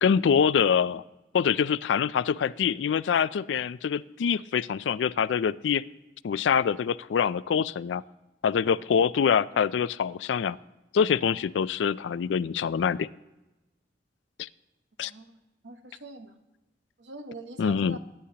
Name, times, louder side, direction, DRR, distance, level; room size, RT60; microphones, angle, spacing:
voice 1, 0.0-1.0 1.3-5.9 6.2-8.0 8.4-10.6 10.9-13.1 14.4-14.5 15.0-15.1 17.6-18.0, left 7 dB, 80° left, 19 dB, 0.4 m, -25 dB
voice 2, 15.0-16.4 17.0-18.0, right 2 dB, 90° right, 7 dB, 1.1 m, -44 dB
22.0 x 9.9 x 2.9 m, 1.0 s
head